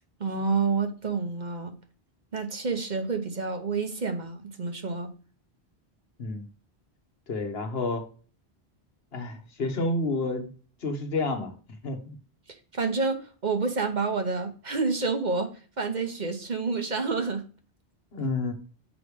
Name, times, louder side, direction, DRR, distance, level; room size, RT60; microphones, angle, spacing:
voice 1, 0.2-1.7 2.3-5.1 12.7-15.5 15.8-17.4, right 4 dB, 45° right, 6 dB, 1.0 m, -28 dB
voice 2, 7.3-8.0 9.1-10.5 10.8-11.5 11.8-12.1 18.1-18.5, left 2 dB, 70° left, 4 dB, 1.4 m, -29 dB
6.2 x 4.9 x 4.8 m, 0.38 s
omnidirectional pair, 1.1 m